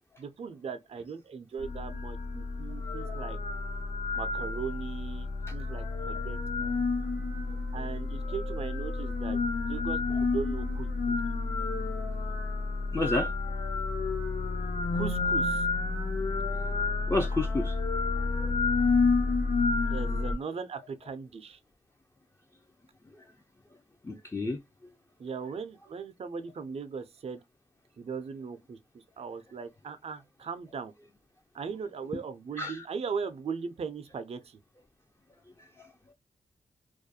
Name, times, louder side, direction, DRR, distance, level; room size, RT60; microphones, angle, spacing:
voice 1, 0.2-3.4 4.1-6.8 7.7-11.2 14.9-15.7 19.9-21.6 25.2-27.4 28.0-30.9 31.5-34.6, right 5 dB, 45° right, 0.4 m, -38 dB
sound 1, 1.6-20.3, left 3 dB, 60° left, 0.8 m, -30 dB
voice 2, 12.9-13.3 17.1-17.8 18.4-18.5 24.0-24.6 32.6-32.8, left 2 dB, 20° left, 0.5 m, -30 dB
2.4 x 2.2 x 2.6 m
cardioid pair, 45°, 14 cm